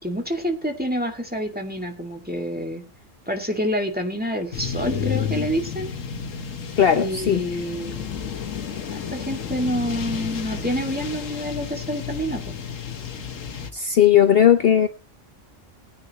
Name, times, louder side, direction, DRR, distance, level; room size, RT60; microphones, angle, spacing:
voice 1, 0.0-2.8 3.3-5.9 6.9-8.2 8.9-12.5, equal, 5° right, 2 dB, 2.2 m, -28 dB
sound 1, 4.5-13.7, left 7 dB, 90° left, 1.6 m, -31 dB
voice 2, 6.8-7.4 13.7-14.9, left 9 dB, 55° left, 9 dB, 0.9 m, -17 dB
20.5 x 9.7 x 3.0 m, 0.29 s
omnidirectional pair, 1.3 m